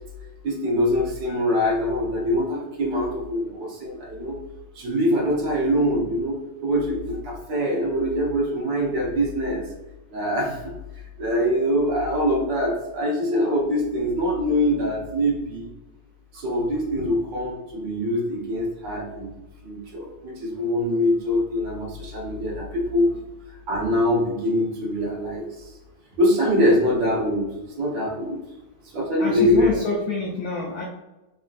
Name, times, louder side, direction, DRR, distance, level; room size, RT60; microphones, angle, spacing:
voice 1, 0.4-4.4 4.7-9.7 10.1-15.7 16.3-19.3 19.6-23.1 23.7-25.7 26.2-27.5 27.8-28.4 28.8-29.8, equal, 65° right, -3 dB, 1.5 m, -24 dB
voice 2, 29.2-30.8, left 3 dB, 80° left, -2 dB, 0.8 m, -27 dB
4.0 x 2.6 x 2.5 m, 1.0 s
omnidirectional pair, 2.4 m